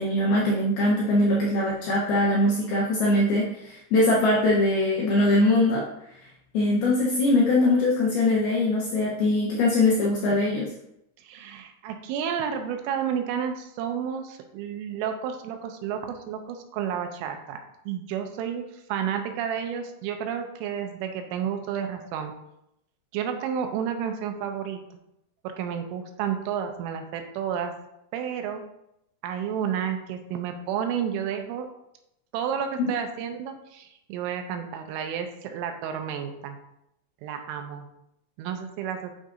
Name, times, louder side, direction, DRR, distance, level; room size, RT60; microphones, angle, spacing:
voice 1, 0.0-5.8 6.5-10.7, left 2 dB, 75° left, -4 dB, 2.3 m, -22 dB
voice 2, 11.2-17.6 17.9-18.6 18.9-22.3 23.1-24.8 25.4-27.7 28.1-28.6 29.2-31.7 32.3-36.6 37.2-37.9 38.4-39.1, right 8 dB, 90° right, 5 dB, 3.2 m, -31 dB
9.4 x 6.4 x 2.6 m, 0.81 s
omnidirectional pair, 5.7 m